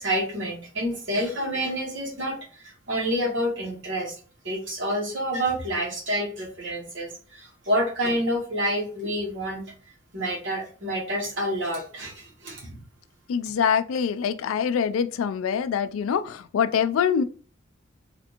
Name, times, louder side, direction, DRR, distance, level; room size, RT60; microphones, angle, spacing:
voice 1, 0.0-4.1 4.4-9.6 10.1-12.8, equal, 60° right, 1.1 m, -28 dB
voice 2, 13.3-17.2, left 7 dB, 85° left, 0.3 m, -24 dB
3.3 x 2.5 x 2.8 m
head